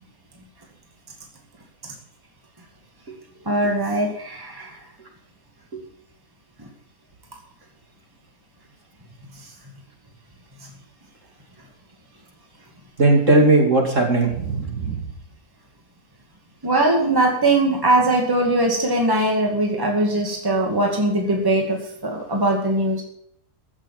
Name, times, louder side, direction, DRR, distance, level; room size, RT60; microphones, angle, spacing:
voice 1, 3.5-4.8 16.6-23.0, right 1 dB, 15° right, 0 dB, 2.3 m, -21 dB
voice 2, 13.0-15.0, right 2 dB, 55° right, 1 dB, 3.3 m, -18 dB
15.5 x 7.2 x 7.3 m, 0.70 s
omnidirectional pair, 1.6 m